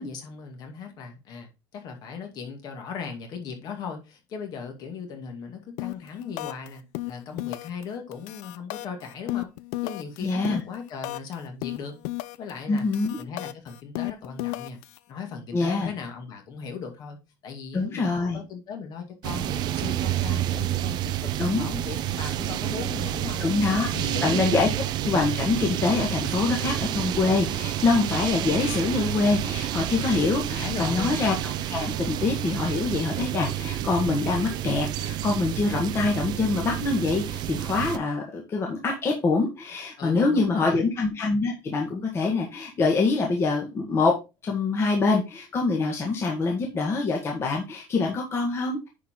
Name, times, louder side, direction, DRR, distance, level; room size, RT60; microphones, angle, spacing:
voice 1, 0.0-9.5 9.8-12.0 12.4-12.9 13.2-14.8 15.1-17.2 17.4-23.5 23.9-24.6 30.5-31.2 40.0-40.9, left 6 dB, 45° left, 2.3 m, -37 dB
sound 1, 5.8-6.1 6.4-6.7 6.9-7.8 8.1-11.3 11.6-12.5 12.8-15.0, left 18 dB, 75° left, 0.6 m, -33 dB
voice 2, 10.2-10.6 12.7-13.2 15.5-15.9 17.7-18.4 21.4-21.7 23.4-23.9 24.2-24.7 25.0-31.4 31.7-44.1 44.4-48.9, left 3 dB, 25° left, 1.7 m, -25 dB
sound 2, 19.2-38.0, right 13 dB, 45° right, 0.6 m, -29 dB
9.9 x 4.7 x 3.8 m
cardioid pair, 155°, 10 cm